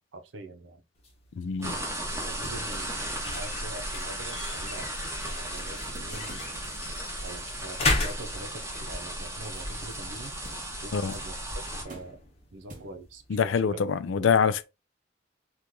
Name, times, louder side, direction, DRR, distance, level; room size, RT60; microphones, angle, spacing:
voice 1, 0.1-0.8 1.6-1.9 2.2-4.9 5.2-6.4 7.2-10.3 10.8-12.2 12.5-13.8 14.2-14.3, right 2 dB, 90° right, 0.7 m, -44 dB
sound 1, 1.0-13.7, left 2 dB, 35° left, 0.9 m, -37 dB
voice 2, 1.4-1.8 10.9-11.2 13.3-14.6, left 6 dB, 90° left, 0.4 m, -25 dB
sound 2, 1.6-11.8, right 1 dB, 15° right, 1.0 m, -35 dB
sound 3, 4.4-13.2, right 1 dB, 45° right, 0.9 m, -51 dB
2.9 x 2.4 x 3.6 m
head